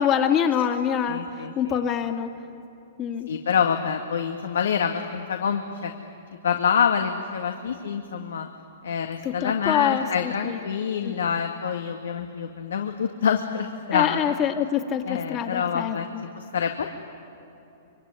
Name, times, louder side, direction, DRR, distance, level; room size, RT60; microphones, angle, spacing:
voice 1, 0.0-2.3 3.0-3.3 9.4-10.6 11.0-11.2 13.9-16.2, left 8 dB, 35° left, 5 dB, 2.4 m, -25 dB
voice 2, 1.1-1.8 3.3-5.9 6.4-8.5 8.8-14.3 15.1-16.9, left 7 dB, 85° left, 4 dB, 1.9 m, -26 dB
25.0 x 24.5 x 9.8 m, 2.8 s
hypercardioid pair, 125°, 0 cm